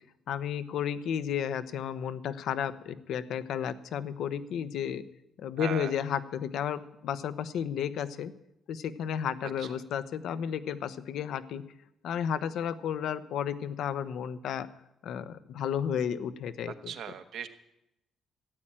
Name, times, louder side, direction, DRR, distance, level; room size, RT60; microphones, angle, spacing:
voice 1, 0.3-5.0 5.4-8.3 8.7-11.6 12.0-14.7 15.0-16.9, left 8 dB, 75° left, 13 dB, 0.8 m, -33 dB
voice 2, 5.6-6.0 9.4-9.8 16.7-17.5, right 8 dB, 75° right, 8 dB, 1.2 m, -39 dB
14.5 x 8.6 x 8.9 m, 0.83 s
cardioid pair, 90°, 0 cm